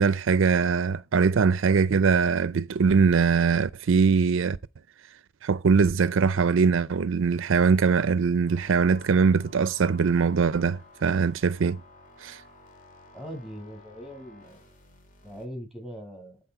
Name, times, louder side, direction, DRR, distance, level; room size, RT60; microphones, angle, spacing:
voice 1, 0.0-4.6 5.4-11.8 12.2-12.4, right 5 dB, 70° right, 0.4 m, -22 dB
sound 1, 8.5-15.5, left 1 dB, 40° left, 2.1 m, -53 dB
voice 2, 13.1-14.6 15.2-16.4, equal, ahead, 6.7 m, -40 dB
12.5 x 4.2 x 4.7 m
head